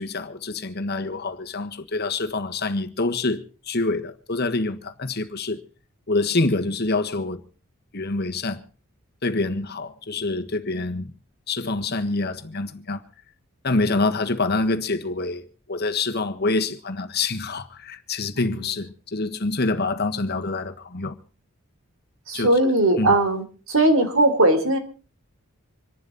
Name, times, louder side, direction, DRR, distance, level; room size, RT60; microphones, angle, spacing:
voice 1, 0.0-5.6 6.1-7.4 7.9-8.6 9.2-11.1 11.5-13.0 13.6-21.2 22.3-22.5 23.0-23.1, left 3 dB, 50° left, 1.5 m, -26 dB
voice 2, 18.4-18.7 22.3-24.8, right 2 dB, 70° right, 3.8 m, -19 dB
26.5 x 11.5 x 4.1 m
head